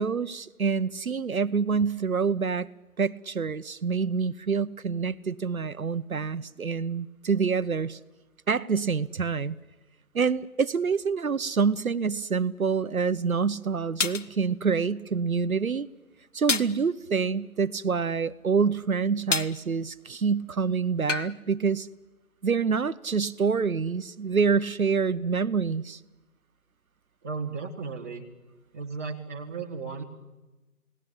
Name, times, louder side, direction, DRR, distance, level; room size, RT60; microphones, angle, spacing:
voice 1, 0.0-2.7 3.0-8.0 8.5-9.6 10.1-15.9 16.3-21.9 22.4-26.0, right 5 dB, 65° right, 13 dB, 0.9 m, -26 dB
sound 1, 12.9-13.0 14.0-14.3 16.5-16.8 19.3-19.6 21.1-21.3, left 4 dB, 55° left, 1.1 m, -27 dB
voice 2, 27.2-28.3 28.7-30.0, right 4 dB, 10° right, -3 dB, 1.1 m, -35 dB
29.0 x 18.5 x 8.8 m, 1.1 s
figure-of-eight pair, 160°, 45 cm